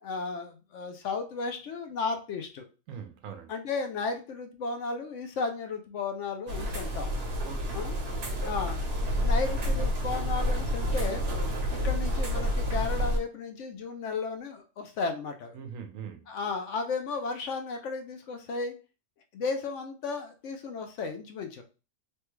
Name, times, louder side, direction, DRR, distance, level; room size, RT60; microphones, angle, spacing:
voice 1, 0.0-2.7 3.5-7.1 7.7-8.0 8.4-11.2 11.7-15.6 16.3-18.7 19.3-21.6, left 4 dB, 70° left, 5 dB, 0.9 m, -34 dB
voice 2, 2.9-3.5 7.4-7.8 15.5-16.3, right 7 dB, 75° right, 7 dB, 1.0 m, -41 dB
sound 1, 6.5-13.2, equal, 55° right, 1.1 m, -29 dB
3.2 x 2.3 x 3.0 m, 0.32 s
omnidirectional pair, 1.4 m